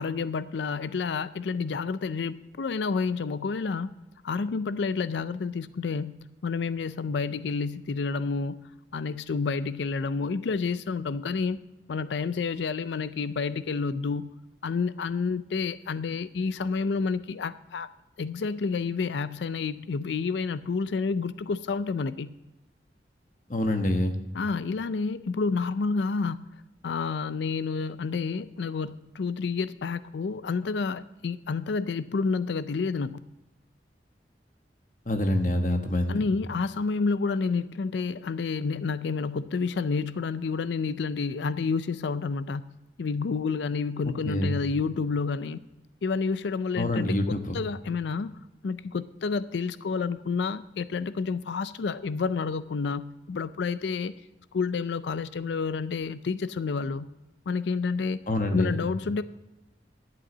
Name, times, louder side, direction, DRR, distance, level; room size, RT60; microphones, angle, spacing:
voice 1, 0.0-3.9 4.2-8.6 8.9-11.6 11.9-14.4 14.6-17.9 18.2-22.3 24.3-26.4 26.8-33.2 36.1-45.6 46.0-48.3 48.6-54.1 54.5-57.1 57.5-58.2 58.5-59.2, left 4 dB, 75° left, 15 dB, 0.4 m, -29 dB
voice 2, 23.5-24.2 35.1-36.2 44.0-44.6 46.8-47.6 58.3-58.8, left 1 dB, 45° left, 6 dB, 1.2 m, -26 dB
11.5 x 8.1 x 6.1 m, 0.99 s
head